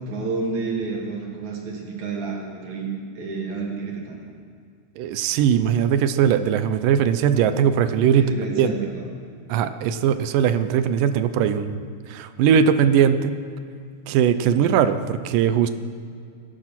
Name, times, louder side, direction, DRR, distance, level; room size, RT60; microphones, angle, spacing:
voice 1, 0.0-4.2 8.2-9.1, right 3 dB, 60° right, -1 dB, 3.7 m, -29 dB
voice 2, 5.0-8.3 8.6-8.7 9.5-13.4 14.1-15.7, right 8 dB, 85° right, 11 dB, 2.3 m, -20 dB
18.5 x 10.5 x 6.0 m, 2.3 s
omnidirectional pair, 3.7 m